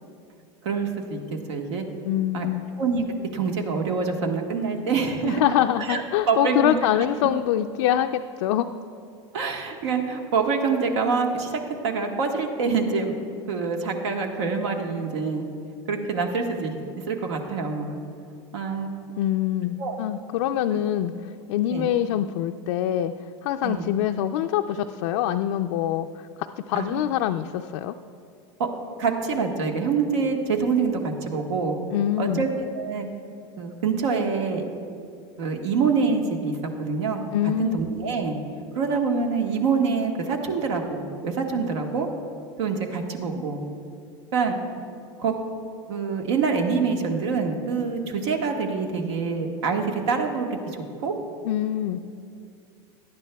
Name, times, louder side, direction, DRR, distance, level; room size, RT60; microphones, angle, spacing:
voice 1, 0.6-1.8 2.3-2.5 2.8-3.0 3.3-5.4 5.8-6.8 9.3-13.1 13.5-15.4 15.9-18.0 18.5-18.9 19.8-20.0 20.7-20.8 21.7-21.9 23.6-23.9 26.7-27.0 28.6-28.7 29.0-31.8 32.2-33.1 33.6-34.6 35.4-37.2 37.6-38.4 38.7-42.1 42.6-43.6 44.3-44.6 45.2-45.3 45.9-50.6 51.0-51.1, right 5 dB, 80° right, 3 dB, 1.4 m, -26 dB
voice 2, 2.0-2.6 5.2-8.7 19.2-21.1 21.5-23.1 23.4-26.3 26.7-27.9 31.9-32.5 37.3-37.8 51.4-52.0, left 11 dB, 75° left, 5 dB, 0.4 m, -24 dB
17.0 x 11.0 x 2.3 m, 2.5 s
supercardioid pair, 115°, 15 cm